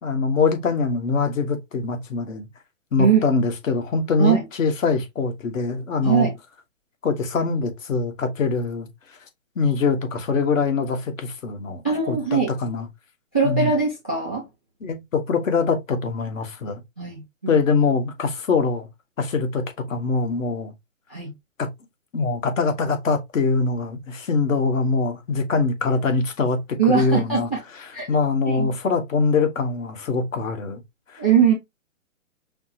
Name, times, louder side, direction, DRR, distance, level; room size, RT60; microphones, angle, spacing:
voice 1, 0.0-2.5 2.9-6.3 7.0-8.9 9.6-11.8 12.1-12.9 13.4-13.7 14.8-16.8 17.5-18.9 19.2-20.7 21.6-21.7 22.1-26.6 26.9-27.5 27.8-30.8 31.1-31.2, left 4 dB, 70° left, 1.4 m, -23 dB
voice 2, 11.8-12.5 13.3-14.4 17.0-17.6 21.1-21.3 26.8-27.6 27.9-28.1 28.5-28.7 31.2-31.5, right 6 dB, 10° left, 0.4 m, -21 dB
5.8 x 2.2 x 2.8 m
hypercardioid pair, 160°, 40 cm